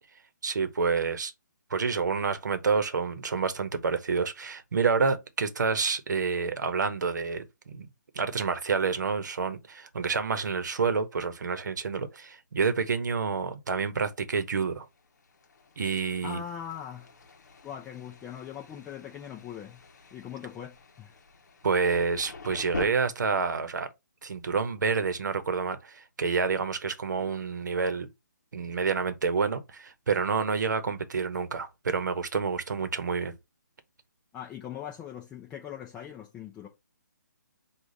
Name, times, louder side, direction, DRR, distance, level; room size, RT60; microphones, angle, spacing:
voice 1, 0.4-1.3 1.7-7.9 8.1-14.9 15.8-16.4 21.6-23.9 24.2-28.1 28.5-33.3, right 5 dB, 75° right, 0.9 m, -28 dB
Thunder, 14.7-22.9, left 3 dB, 65° left, 0.8 m, -45 dB
voice 2, 16.2-17.2 17.6-19.8 20.1-21.1 34.3-36.7, left 9 dB, 10° left, 0.4 m, -41 dB
4.9 x 2.4 x 3.8 m
hypercardioid pair, 160°, 10 cm